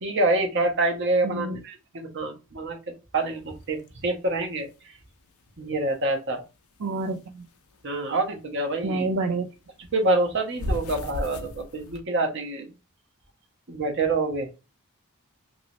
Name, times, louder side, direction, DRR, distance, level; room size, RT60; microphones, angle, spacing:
voice 1, 0.0-2.8 3.1-4.9 5.6-6.4 7.8-9.1 9.9-12.7 13.7-14.5, right 2 dB, 55° right, 0.9 m, -26 dB
voice 2, 1.2-1.6 6.8-7.4 8.8-9.5, right 2 dB, 80° right, 0.4 m, -28 dB
sound 1, 3.2-6.1 6.4-9.2 9.5-12.0, left 1 dB, 75° left, 0.5 m, -36 dB
2.9 x 2.9 x 2.7 m
head